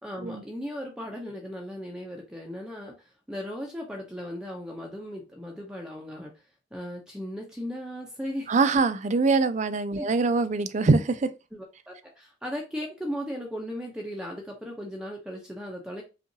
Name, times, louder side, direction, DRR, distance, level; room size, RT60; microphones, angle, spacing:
voice 1, 0.0-2.9 3.3-6.3 6.7-8.5 10.0-10.1 11.5-16.0, equal, 5° right, 0.7 m, -37 dB
voice 2, 8.5-11.3, right 3 dB, 35° right, 0.4 m, -23 dB
5.3 x 2.5 x 2.8 m
head